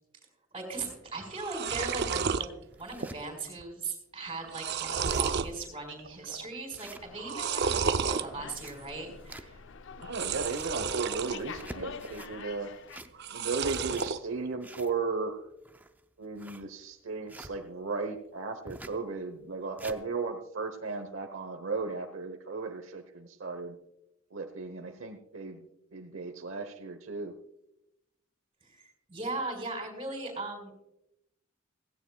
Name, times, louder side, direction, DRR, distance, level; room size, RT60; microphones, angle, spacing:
voice 1, 0.5-9.6 28.6-30.7, right 3 dB, 25° right, 1 dB, 4.4 m, -38 dB
sound 1, 0.9-1.0 1.3-2.5 2.9-3.3 3.6-3.7 4.3-5.5 6.0-6.5 7.2-8.3 10.0-11.4 11.8-12.4 13.1-14.2, right 6 dB, 55° right, 0.5 m, -32 dB
sound 2, 1.9-2.0 2.5-3.2 3.7-3.8 4.1-4.2 4.6-4.7 4.9-5.5 5.9-6.0 6.7-7.5 8.3-9.8 10.2-10.8 11.4-12.3 12.7-13.4 13.6-17.5 18.7-19.0 19.5-20.0, right 1 dB, 10° right, 0.5 m, -48 dB
Slam, 6.9-13.0, left 5 dB, 65° left, 0.6 m, -47 dB
voice 2, 10.0-12.7 13.3-15.5 16.2-23.8 24.3-25.7 25.9-27.4, right 4 dB, 75° right, 5 dB, 1.0 m, -36 dB
16.5 x 16.5 x 2.3 m, 0.85 s
head